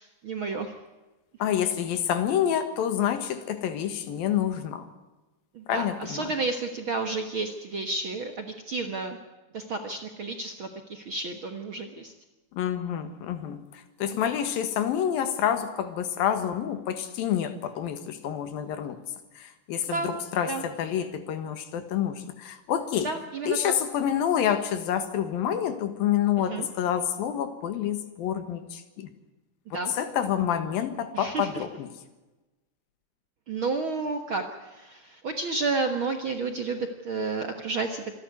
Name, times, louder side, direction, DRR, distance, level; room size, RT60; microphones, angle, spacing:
voice 1, 0.2-0.7 5.5-9.2 9.5-12.1 14.0-14.2 19.9-20.1 20.5-20.6 23.0-23.7 26.5-26.7 29.7-29.9 31.1-31.6 33.5-38.0, right 3 dB, 55° right, 5 dB, 1.5 m, -31 dB
voice 2, 1.4-4.9 5.7-6.3 12.5-19.0 19.4-23.1 23.5-29.1 29.7-31.9, left 9 dB, 80° left, 10 dB, 3.3 m, -28 dB
26.0 x 11.5 x 9.5 m, 1.1 s
omnidirectional pair, 4.1 m